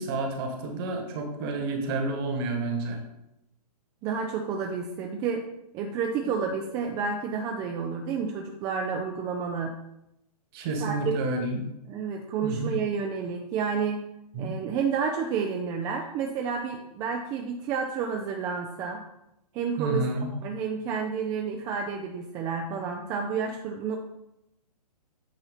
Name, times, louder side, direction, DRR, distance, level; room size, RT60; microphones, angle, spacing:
voice 1, 0.0-3.0 10.5-11.7 12.4-12.7 14.3-14.5 19.8-20.3, right 2 dB, 35° right, 4 dB, 1.5 m, -30 dB
voice 2, 4.0-5.5 5.7-9.8 10.8-11.1 11.9-14.1 14.4-19.0 19.5-20.1 20.4-24.0, right 6 dB, 15° right, 3 dB, 0.4 m, -30 dB
9.0 x 4.2 x 4.1 m, 0.87 s
hypercardioid pair, 145°, 21 cm